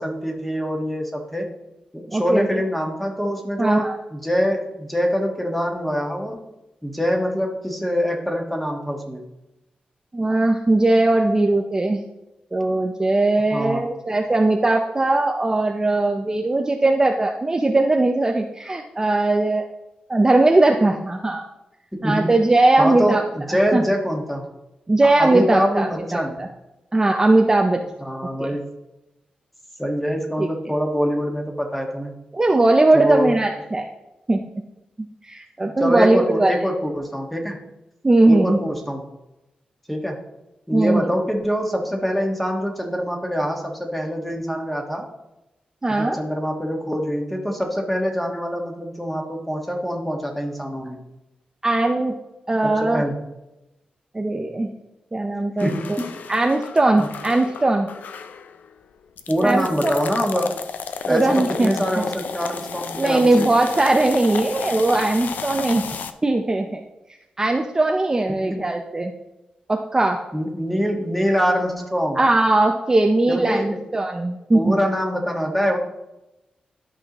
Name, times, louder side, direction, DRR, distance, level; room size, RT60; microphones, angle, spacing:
voice 1, 0.0-1.5 1.9-6.4 6.8-9.2 13.5-13.9 21.9-22.3 22.8-24.5 25.0-26.4 28.0-28.6 29.8-32.1 32.9-33.3 35.6-37.6 38.2-39.1 39.9-40.2 40.7-45.1 45.9-51.0 52.6-53.2 55.6-56.1 57.0-57.1 59.3-60.6 61.1-63.5 68.4-68.7 70.3-72.2 73.3-73.8 74.5-75.8, equal, 5° left, 1 dB, 1.5 m, -24 dB
voice 2, 2.1-2.5 3.6-4.0 10.1-12.0 12.5-19.7 20.1-21.4 22.0-23.2 23.5-23.8 24.9-26.5 26.9-27.8 28.4-28.5 30.4-30.5 32.3-33.9 34.3-34.4 35.2-36.5 38.0-38.6 40.7-41.1 45.8-46.2 51.6-52.1 52.5-53.0 54.1-54.7 55.1-56.0 56.3-57.9 59.4-60.0 61.1-62.0 63.0-65.8 66.2-66.8 67.4-69.1 69.7-70.2 72.2-74.8, right 2 dB, 25° right, 2 dB, 0.6 m, -19 dB
sound 1, 55.6-58.7 59.2-66.1, left 6 dB, 85° left, 0.5 m, -33 dB
12.0 x 5.6 x 3.0 m, 0.95 s
wide cardioid pair, 95°, 3 cm